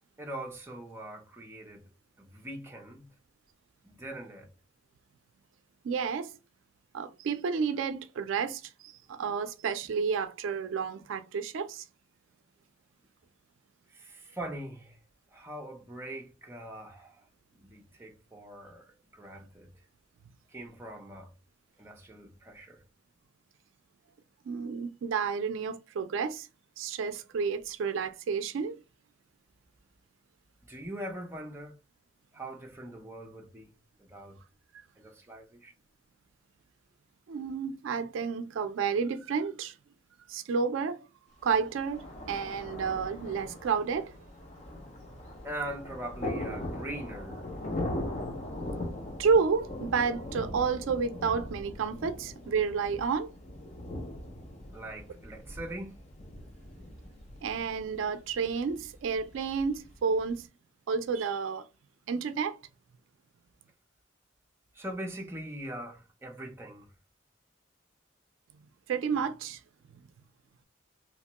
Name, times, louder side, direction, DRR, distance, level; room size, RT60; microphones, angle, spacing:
voice 1, 0.2-1.8 2.2-3.1 3.8-4.5 13.9-15.0 15.3-17.3 17.6-19.7 20.5-21.3 21.8-22.8 30.7-31.8 32.3-33.7 34.0-34.4 35.0-35.7 45.4-47.5 54.7-56.0 64.7-66.9, right 1 dB, 15° right, 0.6 m, -42 dB
voice 2, 5.8-6.4 6.9-11.8 24.5-26.5 26.8-28.8 37.3-39.7 40.3-41.0 41.4-44.1 49.2-53.3 57.4-60.5 60.9-61.7 62.1-62.6 68.9-69.6, right 5 dB, 85° right, 0.3 m, -30 dB
Thunder, 41.5-60.4, left 1 dB, 35° left, 0.6 m, -40 dB
2.9 x 2.1 x 2.8 m
head